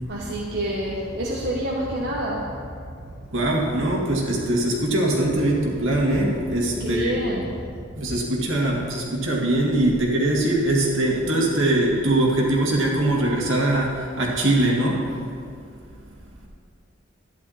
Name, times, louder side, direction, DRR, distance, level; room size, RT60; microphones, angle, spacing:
voice 1, 0.0-3.3 4.1-4.2 5.9-6.0 6.8-7.8, right 1 dB, 55° right, -4 dB, 1.2 m, -29 dB
voice 2, 3.3-7.2 7.9-15.0, right 1 dB, 70° right, -2 dB, 2.3 m, -22 dB
12.0 x 10.5 x 4.3 m, 2.3 s
head